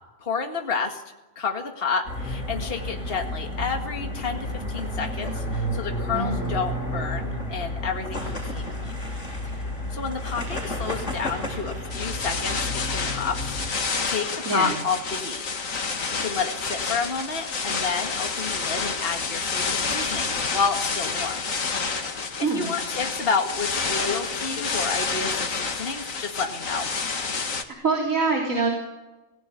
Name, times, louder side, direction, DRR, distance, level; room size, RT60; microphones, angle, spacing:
voice 1, 0.2-1.0 1.4-9.0 9.4-9.5 9.9-15.4 15.7-21.4 22.4-26.9, left 5 dB, 45° left, 4 dB, 2.1 m, -30 dB
sound 1, 2.1-13.7, left 1 dB, 65° left, 7.9 m, -31 dB
voice 2, 6.1-6.6 14.5-14.7 22.4-22.7 27.8-28.7, right 3 dB, 85° right, 1 dB, 3.9 m, -24 dB
sound 2, 11.9-27.6, left 4 dB, 85° left, 2.2 m, -29 dB
25.5 x 17.0 x 9.6 m, 1.1 s
omnidirectional pair, 1.4 m